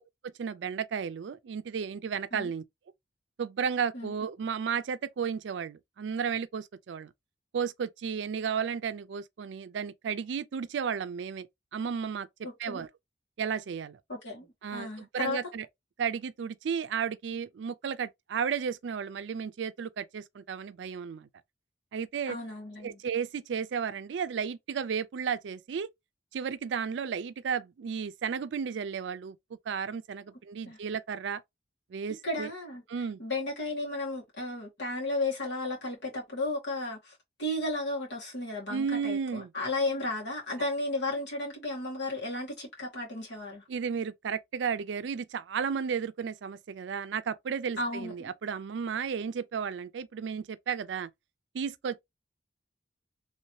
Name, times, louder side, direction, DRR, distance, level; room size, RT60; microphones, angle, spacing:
voice 1, 0.4-2.6 3.4-7.1 7.5-11.5 11.7-12.3 12.6-12.9 13.4-14.0 14.6-15.7 16.0-21.3 21.9-22.4 22.8-25.9 26.3-29.4 29.7-31.4 31.9-32.5 32.9-33.2 38.7-39.5 43.7-51.1 51.5-52.0, right 6 dB, 80° right, 0.4 m, -33 dB
voice 2, 12.4-12.8 14.1-15.4 22.3-23.0 30.7-30.8 32.2-32.8 33.2-37.1 37.4-43.6 47.8-48.3, left 2 dB, 75° left, 1.7 m, -34 dB
3.1 x 2.7 x 3.0 m
head